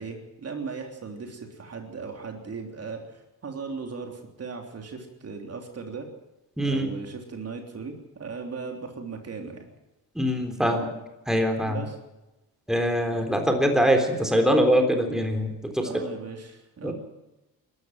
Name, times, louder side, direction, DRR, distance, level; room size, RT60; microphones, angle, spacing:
voice 1, 0.0-6.1 6.6-9.7 10.6-10.9 11.6-12.0 15.8-16.9, right 4 dB, 40° right, 3 dB, 3.4 m, -37 dB
voice 2, 6.6-6.9 10.2-10.9 11.3-11.8 12.7-15.9 16.8-16.9, equal, ahead, 4 dB, 3.6 m, -23 dB
21.0 x 13.0 x 9.3 m, 1.0 s
cardioid pair, 95°, 38 cm